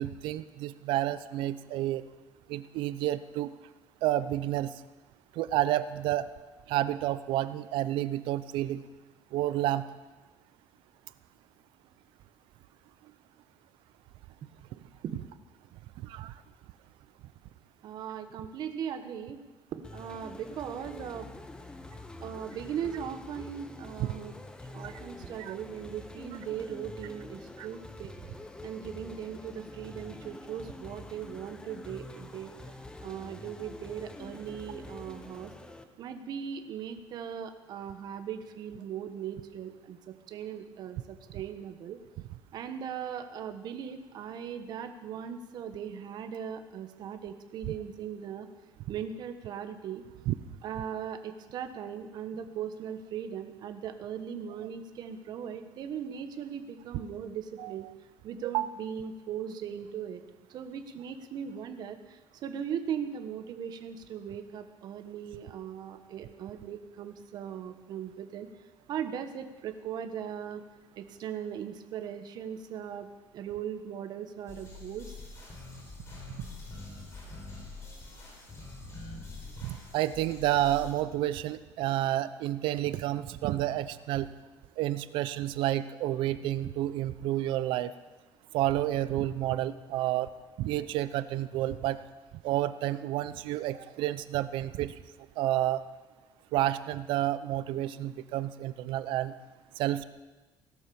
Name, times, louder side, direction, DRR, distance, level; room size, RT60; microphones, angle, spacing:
voice 1, 0.0-2.0 2.5-3.5 4.0-4.7 5.4-6.3 6.7-8.8 9.3-9.9 16.0-16.3 24.0-24.1 24.8-24.9 25.4-25.5 27.6-27.7 50.3-50.4 57.6-57.7 58.5-58.7 79.6-84.3 84.8-87.9 88.5-90.3 90.6-92.0 92.4-94.9 95.4-95.8 96.5-99.3 99.8-100.0, right 14 dB, 85° right, 14 dB, 0.7 m, -30 dB
voice 2, 17.8-19.4 19.7-21.3 22.2-24.4 24.7-28.1 28.6-32.5 33.0-35.5 36.0-42.0 42.5-48.5 48.9-50.0 50.6-57.9 58.2-60.2 60.5-68.5 68.9-70.6 70.9-73.1 73.3-75.2, right 8 dB, 55° right, 8 dB, 1.3 m, -39 dB
sound 1, 19.8-35.8, left 2 dB, 10° left, 0.9 m, -46 dB
sound 2, 74.5-80.9, left 3 dB, 35° left, 4.8 m, -45 dB
17.0 x 12.0 x 7.1 m, 1.2 s
cardioid pair, 155°, 8 cm